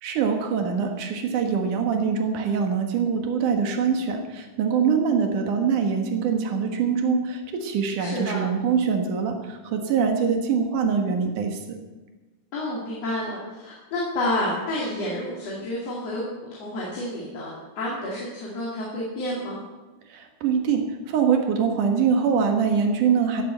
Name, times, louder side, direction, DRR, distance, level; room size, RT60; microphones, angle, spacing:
voice 1, 0.0-11.6 20.1-23.4, right 6 dB, 90° right, 4 dB, 3.1 m, -23 dB
voice 2, 8.0-8.5 12.5-16.2 16.5-19.6, left 1 dB, 55° left, -4 dB, 3.4 m, -29 dB
15.0 x 8.4 x 7.4 m, 1.2 s
omnidirectional pair, 3.5 m